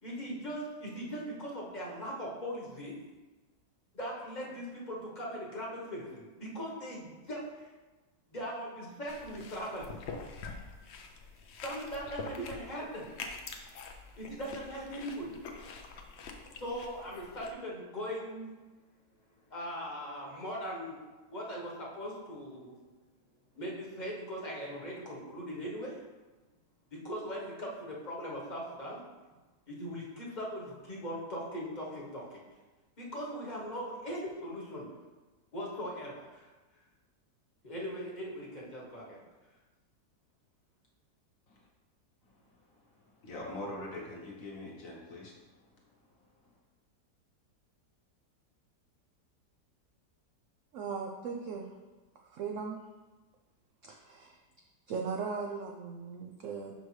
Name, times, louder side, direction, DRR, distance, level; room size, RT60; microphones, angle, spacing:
voice 1, 0.0-2.9 3.9-7.7 8.3-10.0 11.6-13.1 14.2-15.4 16.6-18.5 19.5-21.0 21.3-22.8 23.5-26.0 27.0-29.0 29.7-32.4 33.0-34.9 35.5-36.5 37.6-39.2, equal, 30° left, -4 dB, 1.1 m, -40 dB
sound 1, 9.1-17.5, left 4 dB, 75° left, 0.6 m, -46 dB
voice 2, 42.7-45.3, left 1 dB, 55° left, -2 dB, 1.4 m, -43 dB
voice 3, 50.7-51.7 52.3-52.8 53.8-54.4 54.9-56.7, right 5 dB, 80° right, 2 dB, 0.7 m, -38 dB
6.2 x 5.4 x 3.2 m, 1.2 s
omnidirectional pair, 1.9 m